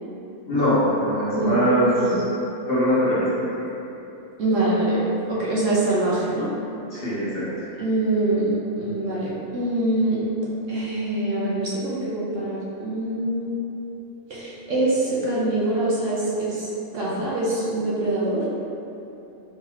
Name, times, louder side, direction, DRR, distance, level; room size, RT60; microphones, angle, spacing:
voice 1, 0.5-1.9 2.7-3.2 3.6-3.7 6.9-7.4, equal, 45° left, -10 dB, 1.1 m, -21 dB
voice 2, 4.4-5.0 5.3-6.5 7.8-10.2 10.7-13.5 14.3-16.7 16.9-18.4, right 2 dB, 60° right, -8 dB, 1.1 m, -24 dB
4.6 x 3.7 x 2.8 m, 3.0 s
omnidirectional pair, 1.6 m